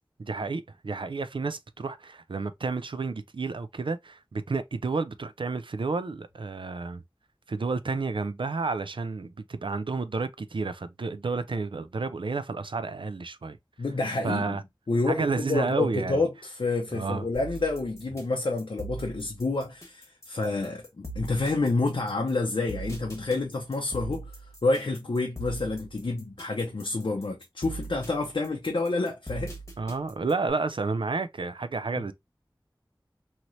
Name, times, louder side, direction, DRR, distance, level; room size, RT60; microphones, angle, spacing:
voice 1, 0.2-7.0 7.5-13.6 14.2-14.6 15.1-16.2 16.9-17.3 29.8-32.1, right 4 dB, 80° right, 0.4 m, -31 dB
voice 2, 13.8-14.6 14.9-24.3 24.6-29.5, left 3 dB, 80° left, 0.5 m, -28 dB
sound 1, 17.3-30.5, right 2 dB, 35° left, 1.3 m, -41 dB
3.1 x 2.8 x 2.5 m
wide cardioid pair, 50°, 8 cm